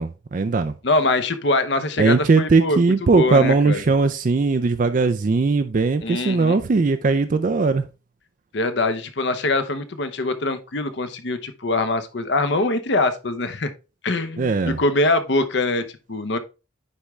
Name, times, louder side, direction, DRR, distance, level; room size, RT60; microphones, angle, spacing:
voice 1, 0.0-0.7 2.0-7.9 14.4-14.8, right 3 dB, 40° right, 0.4 m, -19 dB
voice 2, 0.8-2.8 3.1-3.8 6.0-6.6 8.5-13.7 14.0-16.4, left 2 dB, 60° left, 0.8 m, -23 dB
9.6 x 3.6 x 3.2 m
head